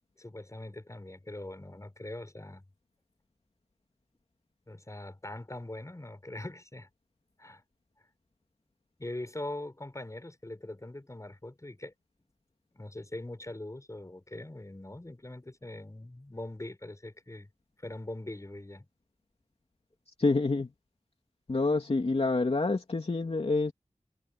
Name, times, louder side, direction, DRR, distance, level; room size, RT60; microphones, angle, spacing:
voice 1, 0.2-2.6 4.7-6.9 7.4-7.6 9.0-11.9 12.7-17.5 17.8-18.9, left 1 dB, 25° left, 6.4 m, -42 dB
voice 2, 20.2-20.7 21.5-23.7, left 3 dB, 55° left, 2.9 m, -27 dB
wide cardioid pair, 70°, 12 cm